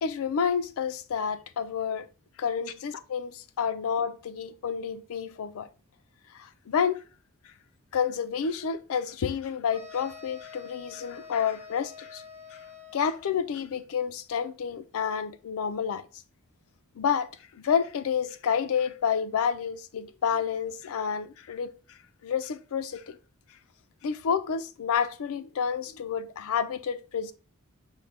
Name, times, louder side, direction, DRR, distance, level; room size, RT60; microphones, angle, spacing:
voice 1, 0.0-2.1 2.4-5.7 6.3-7.0 7.9-12.2 12.5-12.6 12.9-16.0 17.0-22.0 22.2-23.2 24.0-27.3, left 7 dB, 65° left, 0.4 m, -29 dB
sound 1, 9.7-13.4, left 5 dB, 30° right, 0.7 m, -47 dB
5.3 x 2.1 x 3.2 m
head